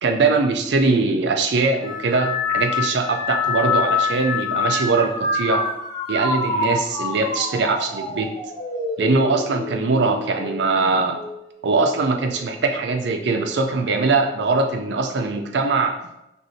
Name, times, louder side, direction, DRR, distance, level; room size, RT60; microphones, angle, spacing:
voice 1, 0.0-5.6 6.1-8.3 9.0-11.2 11.6-16.0, right 3 dB, 75° right, 4 dB, 0.4 m, -21 dB
sound 1, 1.8-11.4 11.9-12.5 13.4-13.8, left 4 dB, 25° left, 0.8 m, -26 dB
6.2 x 2.7 x 2.7 m, 0.88 s
head